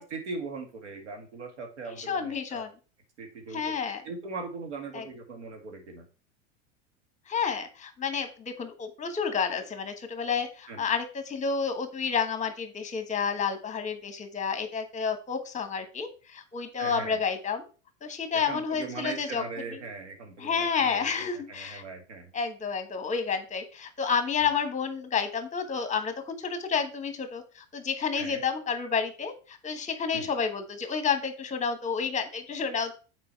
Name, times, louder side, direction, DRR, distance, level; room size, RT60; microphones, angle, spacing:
voice 1, 0.0-2.6 3.2-3.7 4.0-6.1 10.7-10.8 16.8-17.2 18.3-21.1 21.5-22.3 28.2-28.4 30.1-30.3, right 4 dB, 90° right, 4 dB, 2.1 m, -39 dB
voice 2, 2.0-2.7 3.5-4.0 4.9-5.0 7.3-17.7 18.0-19.4 20.4-21.8 22.3-32.9, left 6 dB, 20° left, 8 dB, 1.3 m, -30 dB
6.8 x 4.7 x 4.5 m, 0.35 s
hypercardioid pair, 110°, 34 cm